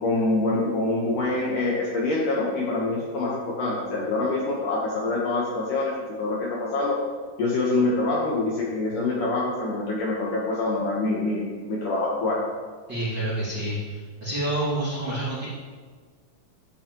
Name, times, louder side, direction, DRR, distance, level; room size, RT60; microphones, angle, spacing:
voice 1, 0.0-7.0 7.4-12.4, left 2 dB, 65° left, -4 dB, 2.1 m, -25 dB
voice 2, 12.9-15.5, right 1 dB, 35° right, -10 dB, 2.0 m, -28 dB
12.0 x 7.9 x 3.0 m, 1.6 s
omnidirectional pair, 4.8 m